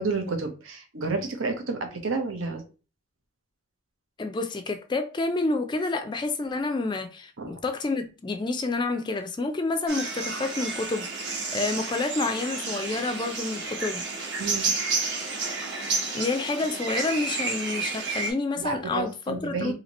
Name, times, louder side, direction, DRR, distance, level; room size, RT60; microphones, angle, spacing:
voice 1, 0.0-2.6 7.4-7.6 14.4-14.7 18.6-19.7, right 3 dB, 85° right, 0.8 m, -30 dB
voice 2, 4.2-14.1 16.1-19.7, left 3 dB, 25° left, 0.3 m, -29 dB
sound 1, 9.9-18.3, right 3 dB, 60° right, 1.0 m, -31 dB
2.8 x 2.8 x 4.1 m
head